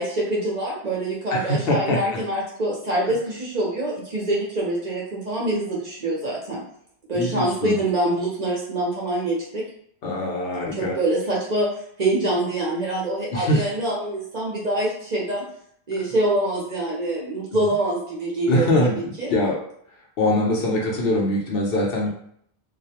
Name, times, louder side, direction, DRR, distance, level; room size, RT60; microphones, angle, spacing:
voice 1, 0.0-6.6 7.1-9.6 10.7-11.7 12.0-15.4 15.9-19.3, right 1 dB, 45° right, -5 dB, 0.7 m, -25 dB
voice 2, 1.3-2.2 7.1-7.8 10.0-10.9 13.3-13.7 17.5-17.6 18.5-19.6 20.2-22.1, left 1 dB, 65° left, -2 dB, 0.7 m, -23 dB
2.3 x 2.1 x 2.8 m, 0.67 s
omnidirectional pair, 1.1 m